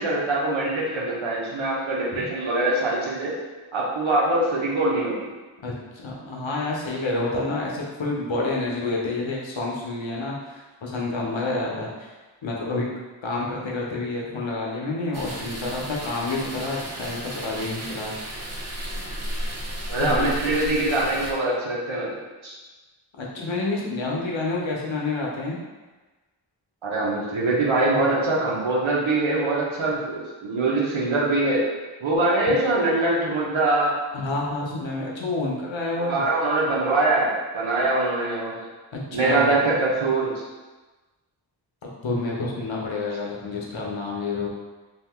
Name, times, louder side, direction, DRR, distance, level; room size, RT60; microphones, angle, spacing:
voice 1, 0.0-3.3 3.7-5.3 19.9-22.1 22.4-22.5 26.8-31.6 32.0-33.9 35.9-38.6 39.1-40.4, right 2 dB, 90° right, -5 dB, 0.9 m, -23 dB
voice 2, 5.6-12.1 12.4-12.9 13.2-18.1 20.0-20.3 23.2-25.6 34.1-36.2 39.1-39.5 42.0-44.5, left 2 dB, 75° left, -3 dB, 0.8 m, -28 dB
sound 1, 15.1-21.3, right 1 dB, 35° right, 0.6 m, -33 dB
2.8 x 2.6 x 3.5 m, 1.2 s
wide cardioid pair, 45°, 46 cm